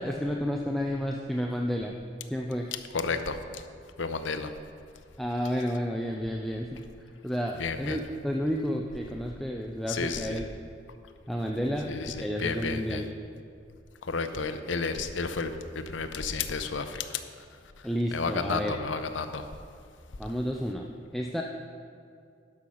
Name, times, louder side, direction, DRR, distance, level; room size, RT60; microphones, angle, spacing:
voice 1, 0.0-1.9 2.3-2.7 5.2-6.8 7.2-10.5 11.3-13.1 17.8-18.8 20.2-21.4, equal, ahead, 0 dB, 0.4 m, -31 dB
voice 2, 2.7-3.6 4.0-4.5 7.5-8.0 9.9-10.4 11.9-13.0 14.0-17.2 18.1-19.5, left 4 dB, 85° left, 8 dB, 0.7 m, -32 dB
10.5 x 5.5 x 6.3 m, 2.3 s
head